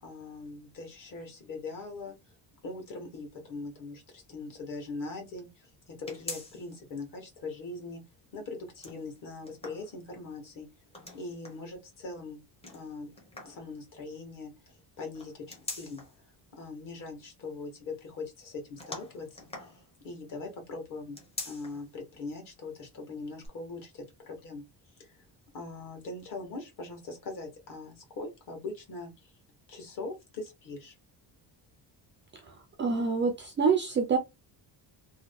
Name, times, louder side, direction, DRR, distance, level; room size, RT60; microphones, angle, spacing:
voice 1, 0.0-2.3 2.6-8.0 8.3-10.7 11.1-13.1 13.4-16.0 16.5-19.7 20.0-21.2 21.4-24.6 25.0-25.2 25.5-29.3 29.7-30.9, left 3 dB, 45° left, 1.4 m, -41 dB
sound 1, 6.1-6.9 7.3-7.4 8.6-10.3 10.9-11.7 12.6-13.7 15.1-16.2 18.8-20.2 21.1-21.9 22.3-22.4 23.4-23.5, left 2 dB, 15° left, 0.7 m, -44 dB
voice 2, 32.8-34.2, right 5 dB, 30° right, 0.4 m, -26 dB
3.0 x 2.2 x 3.4 m
cardioid pair, 180°, 44 cm